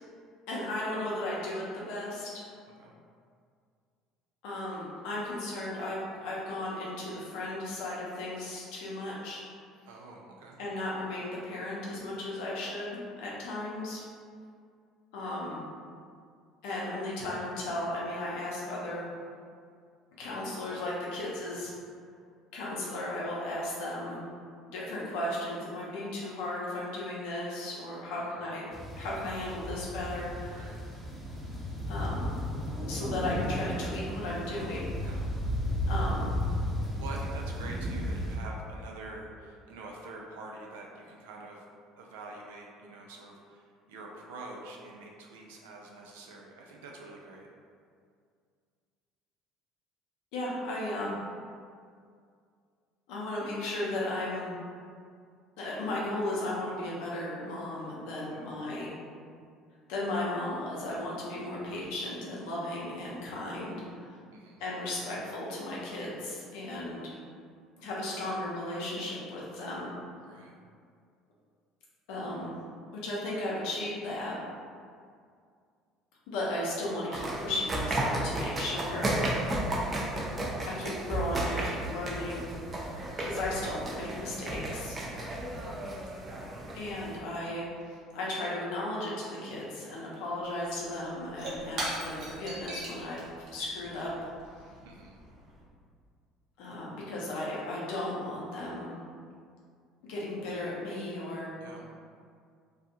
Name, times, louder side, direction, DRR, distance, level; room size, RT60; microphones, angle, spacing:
voice 1, 0.5-2.5 4.4-9.4 10.6-14.0 15.1-15.6 16.6-19.1 20.2-21.7 22.5-24.2 24.7-28.7 28.9-30.7 31.9-32.3 32.9-35.1 35.9-36.3 50.3-51.1 53.1-54.6 55.6-58.9 59.9-64.1 64.6-67.2 67.8-69.9 72.1-72.5 73.0-74.4 76.3-79.2 80.6-82.6 83.2-85.0 86.7-93.2 93.5-94.1 96.6-99.0 100.1-101.5, left 1 dB, 80° left, -5 dB, 0.7 m, -35 dB
voice 2, 9.9-10.6 28.2-28.4 30.5-30.8 35.0-35.2 37.0-41.6 42.0-47.5 58.3-58.5 64.3-64.6 70.2-70.6 85.1-85.5 94.8-95.2 101.5-101.9, right 2 dB, 90° right, -1 dB, 0.4 m, -46 dB
sound 1, 28.7-38.4, equal, 5° left, 0.7 m, -34 dB
sound 2, 77.1-87.2, right 1 dB, 30° right, 0.5 m, -33 dB
Shatter / Crushing, 90.8-95.6, right 1 dB, 60° right, 0.9 m, -41 dB
2.4 x 2.3 x 2.7 m, 2.2 s
supercardioid pair, 80°, 0 cm